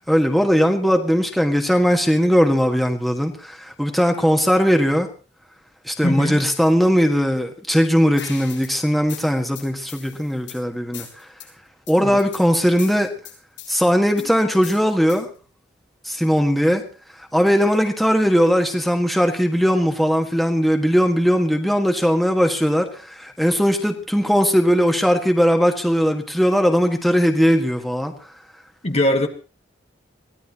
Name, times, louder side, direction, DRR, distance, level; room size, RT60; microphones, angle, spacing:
voice 1, 0.1-5.1 5.9-11.3 11.9-13.1 13.7-15.3 16.1-16.8 17.3-28.1, equal, ahead, 3 dB, 1.8 m, -19 dB
voice 2, 6.0-6.4 12.0-12.2 28.8-29.3, left 1 dB, 35° left, 5 dB, 1.6 m, -20 dB
sound 1, 8.2-8.7 9.1-10.6 10.9-11.5 11.9-12.4 12.8-13.8 14.2-15.4, left 8 dB, 85° left, 7.9 m, -39 dB
23.5 x 16.5 x 3.0 m, 0.36 s
head